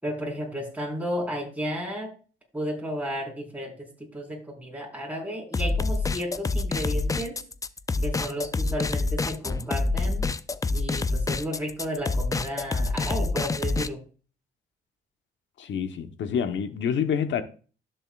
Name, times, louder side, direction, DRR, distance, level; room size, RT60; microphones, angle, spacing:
voice 1, 0.0-2.1 2.5-7.4 8.0-10.3 10.7-14.0, equal, 5° right, 4.4 m, -33 dB
sound 1, 5.5-13.9, left 3 dB, 15° left, 0.4 m, -27 dB
voice 2, 15.6-17.4, left 7 dB, 70° left, 1.1 m, -27 dB
12.5 x 7.4 x 2.4 m
cardioid pair, 90°, 20 cm